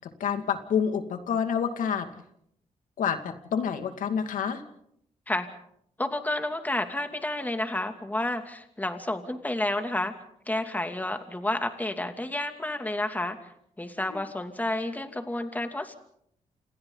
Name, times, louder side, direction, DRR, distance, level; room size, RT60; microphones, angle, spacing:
voice 1, 0.0-2.1 3.0-4.6 14.1-14.2, left 7 dB, 85° left, 7 dB, 2.3 m, -28 dB
voice 2, 6.0-10.1 10.5-13.4 13.8-15.9, left 1 dB, 10° left, 6 dB, 2.6 m, -30 dB
29.5 x 27.5 x 4.0 m, 0.71 s
cardioid pair, 90°, 13 cm